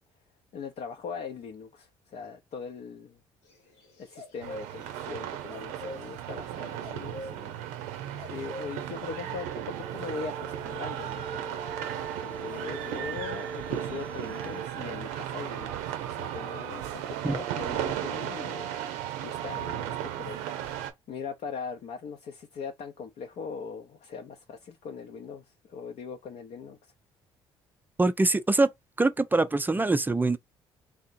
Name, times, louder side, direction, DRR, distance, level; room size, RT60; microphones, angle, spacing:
voice 1, 0.5-3.2 4.0-7.6 8.3-11.7 12.2-20.4 21.1-26.9, left 5 dB, 60° left, 0.6 m, -40 dB
sound 1, 3.5-5.2 5.4-9.4, left 1 dB, 80° left, 1.4 m, -43 dB
sound 2, 4.4-20.9, right 11 dB, 75° right, 0.6 m, -35 dB
sound 3, 8.6-14.7, right 1 dB, 10° left, 0.8 m, -44 dB
voice 2, 28.0-28.7 29.0-30.4, right 2 dB, 15° right, 0.4 m, -24 dB
3.4 x 2.7 x 2.5 m
hypercardioid pair, 55°, 13 cm